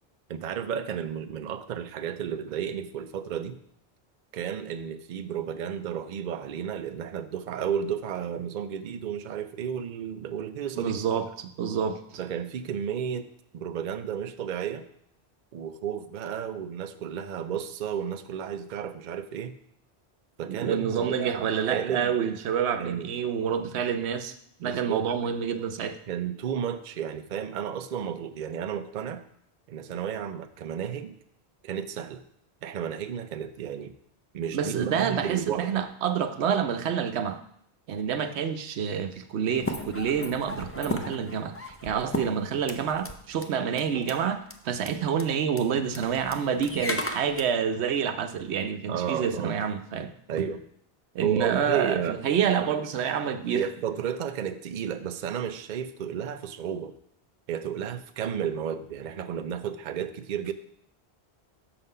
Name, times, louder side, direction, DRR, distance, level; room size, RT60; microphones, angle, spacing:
voice 1, 0.3-3.6 4.3-11.0 12.2-14.9 15.5-19.6 20.4-22.3 22.8-23.1 24.6-25.1 26.1-29.2 29.7-31.2 31.6-32.2 32.6-33.9 34.3-35.8 44.9-45.2 48.9-49.6 50.3-50.6 51.2-52.2 52.5-52.7 53.5-56.9 57.5-60.5, right 8 dB, 55° right, 9 dB, 0.6 m, -32 dB
voice 2, 10.8-12.2 20.4-26.0 34.5-37.4 37.9-50.1 51.1-53.7, right 7 dB, 90° right, 8 dB, 0.9 m, -28 dB
sound 1, 39.6-43.1 43.4-43.5 43.8-44.1 44.5-44.6 44.8-44.9 45.2-45.3 45.6-47.4, left 1 dB, 20° left, 0.4 m, -35 dB
6.8 x 5.7 x 5.4 m, 0.70 s
omnidirectional pair, 1.1 m